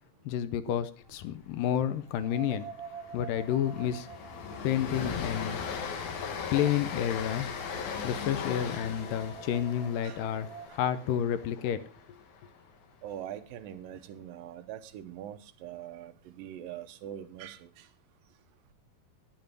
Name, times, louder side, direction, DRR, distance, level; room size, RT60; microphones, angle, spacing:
voice 1, 0.3-2.7 3.1-4.1 4.6-5.6 6.5-7.5 8.0-11.8, left 10 dB, 80° left, 13 dB, 2.3 m, -30 dB
sound 1, 1.1-1.2 2.0-7.0 7.3-7.4 8.8-10.7, right 7 dB, 65° right, 2.1 m, -48 dB
Train, 1.5-1.8 2.0-2.2 2.6-12.7, left 6 dB, 60° left, 2.5 m, -38 dB
voice 2, 13.0-17.9, right 11 dB, 80° right, 9 dB, 2.4 m, -43 dB
10.5 x 9.7 x 5.2 m, 0.40 s
omnidirectional pair, 4.1 m